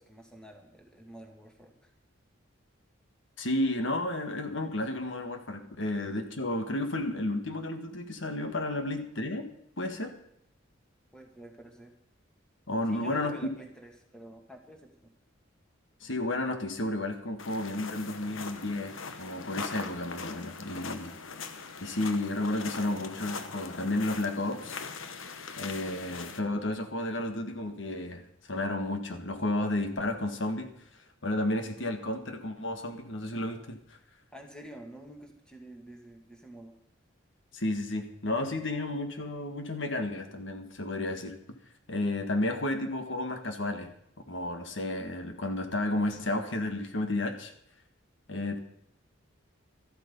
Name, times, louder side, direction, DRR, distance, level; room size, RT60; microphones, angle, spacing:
voice 1, 0.0-1.9 11.1-11.9 12.9-15.1 34.3-36.7, right 1 dB, 5° left, 2 dB, 2.0 m, -49 dB
voice 2, 3.4-9.5 9.8-10.2 12.7-13.3 16.0-18.9 19.2-21.2 21.8-24.8 25.6-28.2 28.5-30.7 31.2-33.8 37.5-41.4 41.9-43.9 44.3-47.5 48.3-48.6, left 1 dB, 70° left, 6 dB, 1.6 m, -32 dB
sound 1, 17.4-26.4, left 5 dB, 85° left, 1.1 m, -41 dB
13.5 x 12.0 x 5.3 m, 0.76 s
head